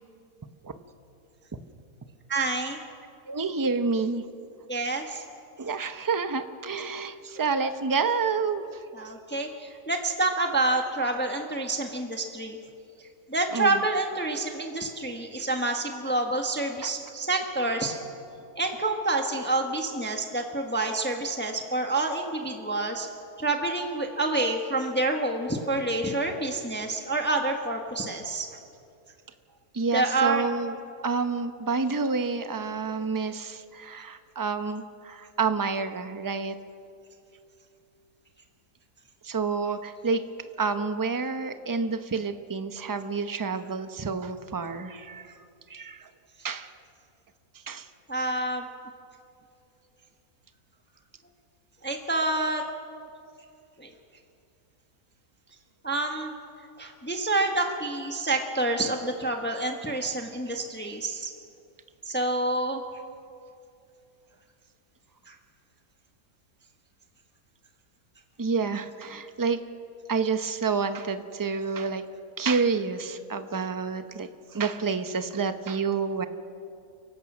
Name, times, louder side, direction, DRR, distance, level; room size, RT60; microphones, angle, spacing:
voice 1, 2.3-2.8 4.7-5.2 8.9-12.6 13.0-18.0 18.6-23.1 23.4-28.5 29.9-30.4 48.1-48.7 51.8-52.6 53.8-53.9 55.8-56.3 56.8-61.3 62.0-62.8 65.3-65.4, right 2 dB, 5° left, 3 dB, 1.3 m, -28 dB
voice 2, 3.3-4.2 5.6-8.8 13.5-13.8 16.8-16.9 29.7-30.8 31.0-36.6 39.2-40.2 40.6-45.4 45.7-46.1 46.4-46.7 47.7-47.9 68.4-69.6 70.1-72.0 72.4-76.3, right 4 dB, 20° right, 9 dB, 0.6 m, -29 dB
29.5 x 16.0 x 6.2 m, 2.6 s
omnidirectional pair, 1.6 m